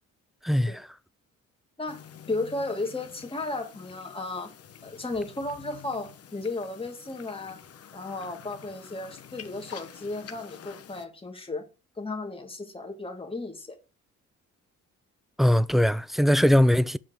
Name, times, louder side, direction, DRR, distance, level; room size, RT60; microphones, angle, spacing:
voice 1, 0.4-0.9 15.4-17.0, equal, ahead, 0.4 m, -21 dB
voice 2, 1.8-4.5 4.8-7.6 7.9-11.6 12.0-13.8, left 2 dB, 20° left, 2.2 m, -34 dB
sound 1, 1.9-11.0, left 8 dB, 50° left, 1.2 m, -48 dB
7.6 x 5.3 x 6.4 m
cardioid pair, 90°, 30 cm